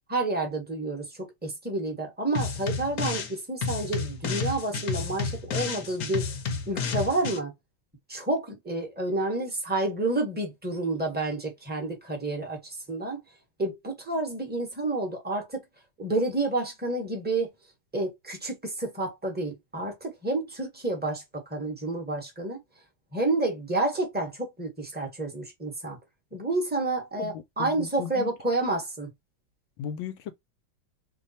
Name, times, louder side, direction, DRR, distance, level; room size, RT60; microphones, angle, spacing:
voice 1, 0.1-6.3 6.7-7.5 8.1-13.2 13.6-15.6 16.0-17.5 17.9-22.6 23.1-26.0 26.3-29.1, right 2 dB, 5° right, 0.8 m, -29 dB
sound 1, 2.3-3.3 3.6-7.4, left 5 dB, 60° left, 1.1 m, -31 dB
voice 2, 27.2-28.3 29.8-30.3, left 9 dB, 85° left, 1.4 m, -36 dB
3.2 x 2.2 x 4.1 m
omnidirectional pair, 2.1 m